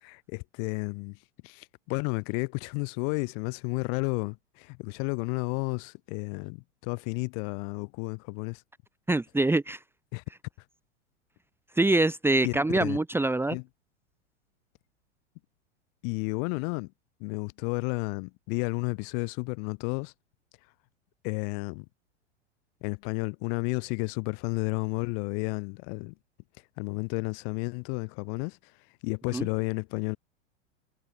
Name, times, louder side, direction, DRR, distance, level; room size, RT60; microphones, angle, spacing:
voice 1, 0.0-1.2 1.4-8.6 10.1-10.2 12.4-13.0 13.5-13.6 16.0-16.9 17.2-20.1 21.2-21.9 22.8-26.1 26.8-28.6 29.0-30.2, left 40 dB or more, 50° left, 4.1 m, -32 dB
voice 2, 9.1-9.8 11.8-13.6 29.3-29.5, right 2 dB, 5° right, 1.7 m, -24 dB
hypercardioid pair, 105°, 36 cm